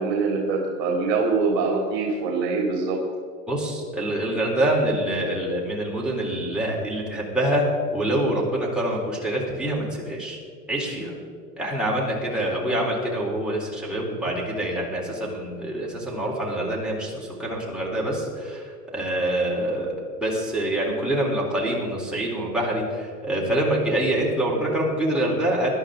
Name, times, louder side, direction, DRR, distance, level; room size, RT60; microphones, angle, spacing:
voice 1, 0.0-3.0, right 4 dB, 40° right, -1 dB, 3.2 m, -24 dB
voice 2, 3.5-7.7 7.9-10.4 10.7-11.2 11.6-19.9 20.2-25.7, right 1 dB, ahead, -5 dB, 4.1 m, -25 dB
20.5 x 11.5 x 3.9 m, 2.3 s
hypercardioid pair, 125°, 48 cm